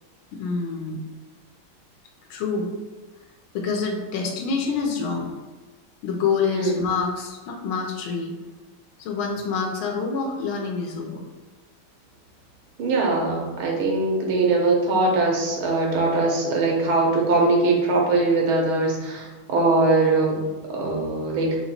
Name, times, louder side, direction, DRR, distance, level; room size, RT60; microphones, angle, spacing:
voice 1, 0.3-1.0 2.3-2.8 3.5-5.3 6.0-8.4 9.0-11.2, left 5 dB, 90° left, 1 dB, 1.5 m, -27 dB
voice 2, 12.8-21.6, right 3 dB, 85° right, -1 dB, 1.8 m, -21 dB
4.3 x 2.9 x 4.1 m, 1.2 s
omnidirectional pair, 2.2 m